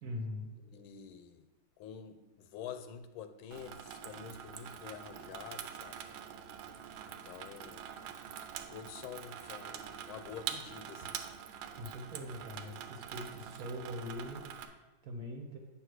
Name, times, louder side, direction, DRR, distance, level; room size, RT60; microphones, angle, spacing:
voice 1, 0.0-0.5 11.8-15.6, left 1 dB, 55° right, 1 dB, 1.3 m, -42 dB
voice 2, 0.6-1.5 1.8-6.1 7.0-7.9 8.7-11.2, left 8 dB, 80° left, 9 dB, 1.4 m, -48 dB
Water tap faucet / Sink (filling or washing), 3.5-14.7, right 8 dB, 90° right, 1.5 m, -45 dB
9.0 x 3.2 x 6.4 m, 1.1 s
omnidirectional pair, 2.3 m